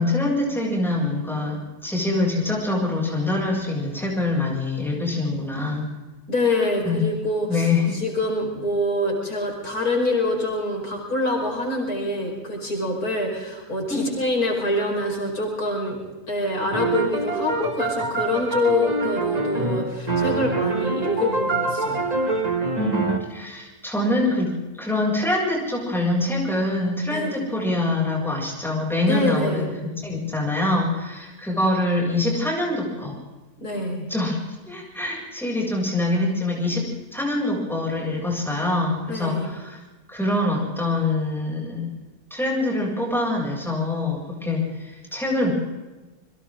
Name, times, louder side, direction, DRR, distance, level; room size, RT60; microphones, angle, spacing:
voice 1, 0.0-5.9 6.8-7.0 7.5-8.0 13.9-14.1 22.8-24.5 24.8-29.7 30.0-33.2 34.1-39.8 40.1-41.9 42.3-45.5, left 2 dB, ahead, -3 dB, 7.3 m, -24 dB
voice 2, 6.3-16.0 16.3-22.1 27.1-27.3 29.1-29.7 33.6-34.1 39.1-39.5, left 1 dB, 75° left, 0 dB, 5.7 m, -25 dB
sound 1, 16.7-23.2, right 3 dB, 25° right, 2.3 m, -25 dB
30.0 x 22.5 x 3.9 m, 1.2 s
omnidirectional pair, 1.6 m